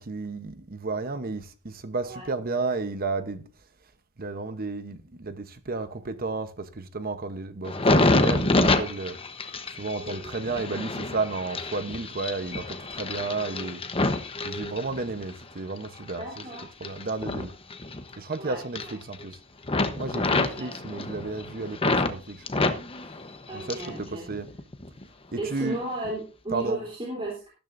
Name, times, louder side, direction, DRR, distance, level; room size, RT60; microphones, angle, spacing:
voice 1, 0.0-3.4 4.2-9.2 9.8-13.8 14.4-16.5 16.8-17.5 18.2-19.4 20.0-22.4 23.5-24.5 25.3-25.8 26.5-26.8, right 3 dB, 40° right, 0.9 m, -32 dB
sound 1, 7.6-15.3 15.8-18.4 18.6-19.3 19.6-22.1 22.5-24.0 24.3-25.0 25.6-25.8, left 2 dB, 25° left, 0.9 m, -27 dB
voice 2, 10.0-10.3 16.2-16.7 18.4-19.0 20.3-20.8 23.5-24.3 25.4-27.5, right 2 dB, 25° right, 3.4 m, -35 dB
14.0 x 12.5 x 2.6 m
head